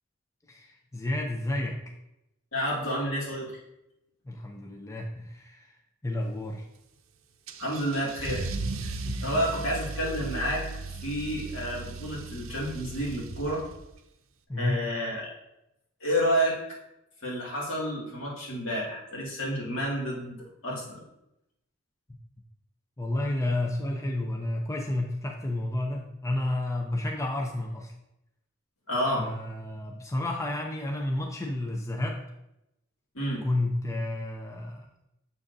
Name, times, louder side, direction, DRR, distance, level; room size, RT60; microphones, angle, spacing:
voice 1, 0.5-1.8 4.3-5.7 6.0-6.7 9.0-9.8 14.5-14.8 23.0-27.9 29.2-32.2 33.4-35.0, left 1 dB, 15° left, 1 dB, 0.5 m, -31 dB
voice 2, 2.5-3.6 7.6-8.5 8.8-10.6 11.0-13.6 14.6-15.3 16.0-16.6 17.2-21.0 28.9-29.2 33.1-33.4, equal, 75° left, -4 dB, 2.3 m, -30 dB
Car / Engine starting / Accelerating revving vroom, 7.5-14.0, right 3 dB, 80° right, 0.6 m, -36 dB
7.2 x 6.2 x 2.7 m, 0.85 s
head